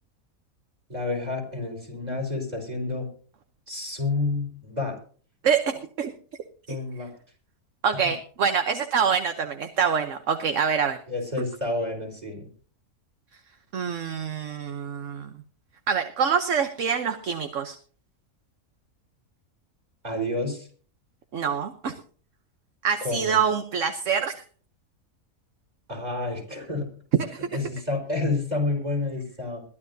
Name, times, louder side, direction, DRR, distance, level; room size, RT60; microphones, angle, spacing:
voice 1, 0.9-3.1 3.7-5.0 6.7-7.1 11.1-12.5 20.0-20.7 23.0-23.4 25.9-26.9 27.5-29.6, left 2 dB, 30° right, 2 dB, 4.6 m, -29 dB
voice 2, 5.4-6.1 7.8-11.0 13.7-15.3 15.9-17.7 21.3-21.9 22.8-24.4 27.2-27.5, right 6 dB, 60° right, 7 dB, 1.2 m, -25 dB
21.5 x 12.5 x 2.7 m, 0.43 s
omnidirectional pair, 1.5 m